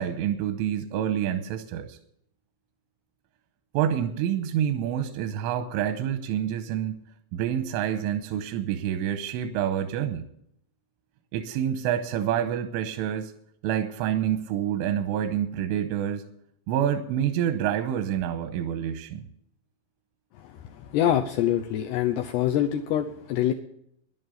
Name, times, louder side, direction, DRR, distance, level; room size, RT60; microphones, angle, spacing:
voice 1, 0.0-2.0 3.7-7.0 7.3-10.2 11.3-13.3 13.6-16.2 16.7-19.2, right 10 dB, 90° right, 8 dB, 3.3 m, -27 dB
voice 2, 20.9-23.5, left 11 dB, 80° left, 4 dB, 2.4 m, -25 dB
11.0 x 11.0 x 6.7 m, 0.74 s
omnidirectional pair, 5.6 m